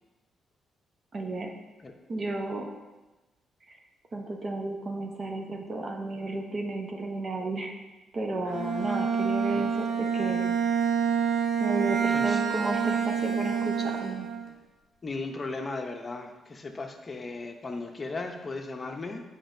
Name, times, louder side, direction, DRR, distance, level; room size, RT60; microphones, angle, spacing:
voice 1, 1.1-1.5 2.1-2.7 4.1-7.7 8.1-10.6 11.6-14.3, right 2 dB, 40° right, 2 dB, 0.9 m, -33 dB
Bowed string instrument, 8.5-14.5, right 6 dB, 65° right, 0.9 m, -27 dB
voice 2, 12.1-12.4 15.0-19.2, left 3 dB, 35° left, 3 dB, 0.7 m, -36 dB
8.5 x 5.1 x 2.7 m, 1.2 s
cardioid pair, 85°, 0 cm